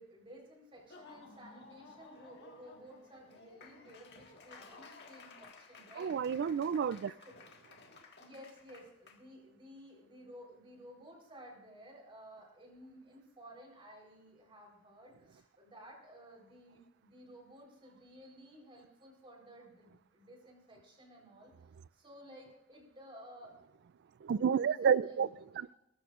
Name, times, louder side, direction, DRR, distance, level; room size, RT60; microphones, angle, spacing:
voice 1, 0.0-6.1 7.2-7.3 8.2-21.5 21.9-23.5 24.5-25.4, equal, 25° right, 3.9 m, -55 dB
Laughter / Applause, 0.8-9.2, left 4 dB, 55° left, 1.6 m, -56 dB
voice 2, 6.0-7.1 24.2-25.3 25.6-25.7, right 7 dB, 55° right, 0.3 m, -30 dB
19.0 x 14.5 x 2.5 m
head